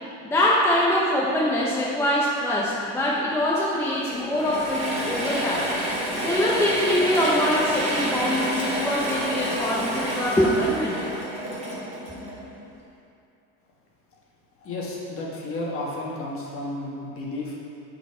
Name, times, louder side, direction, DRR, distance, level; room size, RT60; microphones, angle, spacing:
voice 1, 0.2-5.7 6.2-11.0, left 1 dB, 5° left, -6 dB, 0.7 m, -23 dB
Mechanisms / Drill, 4.1-12.7, equal, 20° right, 1.7 m, -29 dB
voice 2, 14.6-17.6, left 2 dB, 40° left, -3 dB, 1.4 m, -32 dB
8.0 x 4.3 x 4.4 m, 2.7 s
cardioid pair, 140°, 35 cm